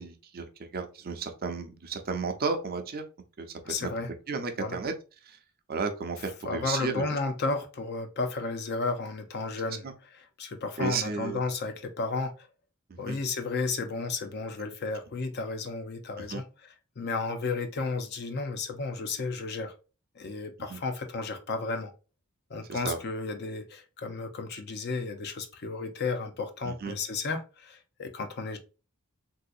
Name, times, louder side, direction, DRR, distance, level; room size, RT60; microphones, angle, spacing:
voice 1, 0.0-3.0 3.4-3.9 4.3-4.9 5.3-5.4 5.7-7.1 10.8-11.4 13.1-13.2 16.3-16.4 20.7-20.8 22.7-23.0 26.7-27.0, right 4 dB, 45° right, 6 dB, 0.5 m, -33 dB
voice 2, 3.6-4.1 4.6-4.8 6.4-9.8 10.1-12.5 13.0-19.7 20.2-21.9 22.5-28.6, left 3 dB, 50° left, 6 dB, 0.6 m, -33 dB
3.5 x 2.7 x 2.4 m, 0.32 s
head